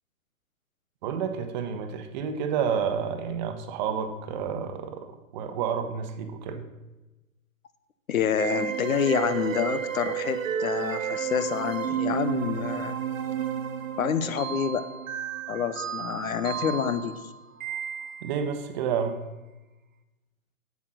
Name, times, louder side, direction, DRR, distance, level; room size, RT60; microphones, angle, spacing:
voice 1, 1.0-5.1 5.3-6.6 18.2-19.2, right 7 dB, 30° right, 7 dB, 1.0 m, -30 dB
voice 2, 8.1-13.0 14.0-14.9 15.5-17.1, left 7 dB, 70° left, 12 dB, 1.0 m, -27 dB
sound 1, 8.4-18.5, right 8 dB, 60° right, 1.1 m, -32 dB
8.3 x 7.2 x 6.1 m, 1.1 s
hypercardioid pair, 135°, 44 cm